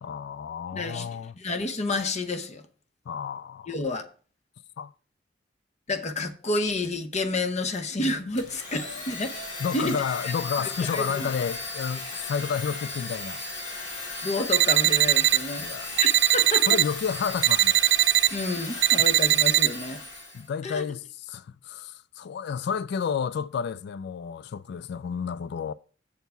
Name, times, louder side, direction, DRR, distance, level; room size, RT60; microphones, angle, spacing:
voice 1, 0.0-1.4 3.1-3.8 4.8-4.9 9.6-13.4 15.6-15.9 16.7-17.8 20.3-25.7, left 6 dB, 65° left, 0.3 m, -31 dB
voice 2, 0.7-1.1 1.4-2.6 3.7-4.0 5.9-9.5 9.7-10.0 10.6-11.3 14.2-15.7 16.0-16.7 18.3-20.1 20.6-20.8, left 2 dB, 40° left, 0.8 m, -30 dB
Domestic sounds home sounds, 8.4-20.5, left 3 dB, 90° left, 2.7 m, -36 dB
sound 1, 14.5-15.4 16.0-16.8 17.4-18.3 18.8-19.7, right 15 dB, 75° right, 0.4 m, -20 dB
7.0 x 4.6 x 6.7 m
head